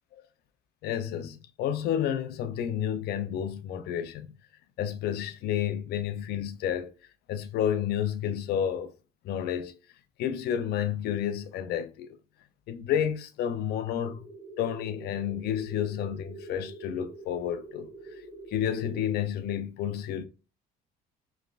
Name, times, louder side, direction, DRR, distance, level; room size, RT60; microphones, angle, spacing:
voice 1, 0.8-4.3 4.8-6.9 7.3-8.9 9.2-9.8 10.2-12.2 12.7-14.2 14.6-17.9 18.5-20.3, left 9 dB, 70° left, 0.5 m, -30 dB
sound 1, 14.1-19.1, right 2 dB, 5° left, 1.5 m, -46 dB
4.8 x 3.3 x 2.4 m
cardioid pair, 110°, 17 cm